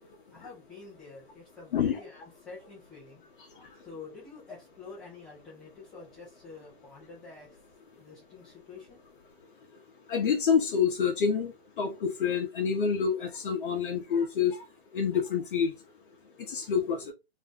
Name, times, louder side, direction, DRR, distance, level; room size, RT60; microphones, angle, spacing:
voice 1, 0.0-3.2 3.7-7.6 8.0-9.0, left 4 dB, ahead, 0.3 m, -48 dB
voice 2, 10.1-14.6 14.9-15.7 16.5-17.1, left 6 dB, 55° left, 0.7 m, -27 dB
2.6 x 2.1 x 3.5 m
hypercardioid pair, 150°, 31 cm